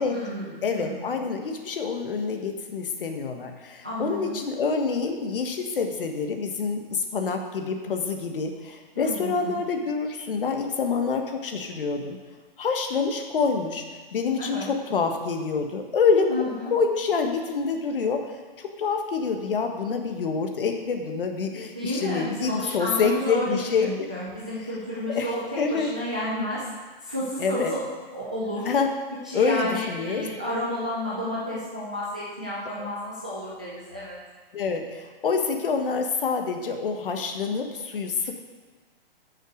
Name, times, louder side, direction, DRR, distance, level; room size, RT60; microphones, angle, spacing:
voice 1, 0.0-1.2 3.8-4.4 8.9-9.6 14.4-14.7 16.3-16.7 21.7-26.7 27.0-27.8 28.1-28.7 29.2-34.2, equal, 10° right, -8 dB, 0.3 m, -31 dB
voice 2, 0.6-12.2 12.6-13.8 14.1-23.9 25.1-25.3 25.6-25.9 27.4-27.7 28.7-28.9 29.3-30.2 34.5-38.4, left 5 dB, 65° left, 5 dB, 1.5 m, -27 dB
11.0 x 6.5 x 5.1 m, 1.4 s
hypercardioid pair, 170°, 30 cm